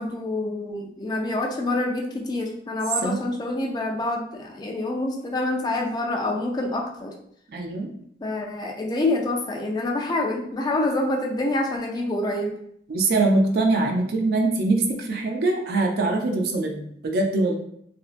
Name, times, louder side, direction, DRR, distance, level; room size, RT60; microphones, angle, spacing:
voice 1, 0.0-7.2 8.2-12.6, left 2 dB, 25° left, 1 dB, 0.3 m, -27 dB
voice 2, 7.5-7.9 12.9-17.6, right 2 dB, 60° right, 2 dB, 0.4 m, -23 dB
2.6 x 2.1 x 2.4 m, 0.70 s
head